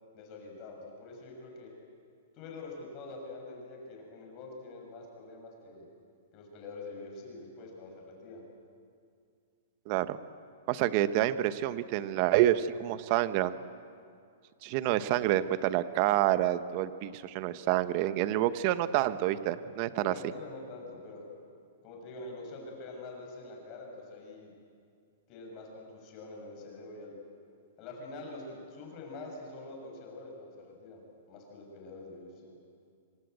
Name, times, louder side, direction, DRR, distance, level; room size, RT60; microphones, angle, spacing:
voice 1, 0.1-1.7 2.3-5.9 6.3-8.4 19.9-21.3 21.8-24.5 25.3-27.2 27.8-31.0 31.3-32.5, left 2 dB, 30° left, 0 dB, 6.5 m, -45 dB
voice 2, 9.9-10.2 10.7-13.6 14.6-20.1, right 13 dB, 40° right, 13 dB, 1.0 m, -28 dB
25.5 x 25.5 x 8.0 m, 2.3 s
hypercardioid pair, 160°, 0 cm